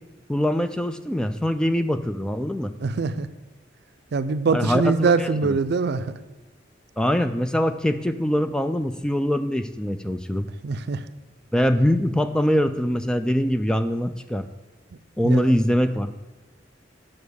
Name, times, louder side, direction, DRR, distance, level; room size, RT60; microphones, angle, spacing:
voice 1, 0.3-2.7 4.5-5.6 7.0-10.5 11.5-14.5 15.2-16.1, equal, 5° left, 10 dB, 0.3 m, -23 dB
voice 2, 2.8-3.3 4.1-6.1 10.6-11.0 15.2-15.5, right 4 dB, 60° right, 12 dB, 0.4 m, -23 dB
7.2 x 5.9 x 6.4 m, 1.1 s
head